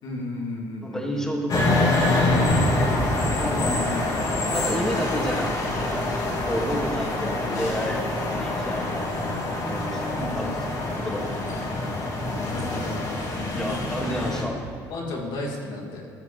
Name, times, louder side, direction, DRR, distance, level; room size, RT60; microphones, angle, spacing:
voice 1, 0.0-1.2 3.6-4.1 10.1-10.5 12.4-13.4 14.3-14.6 14.9-16.0, left 2 dB, 65° left, -2 dB, 2.7 m, -34 dB
voice 2, 0.8-2.9 3.4-3.8 4.5-5.9 6.4-8.0 8.4-10.1 10.3-11.6 13.5-14.6, equal, 5° left, -2 dB, 2.6 m, -31 dB
sound 1, 1.5-14.4, left 2 dB, 50° left, 2.9 m, -25 dB
14.0 x 5.9 x 6.8 m, 2.3 s
supercardioid pair, 70°, 8 cm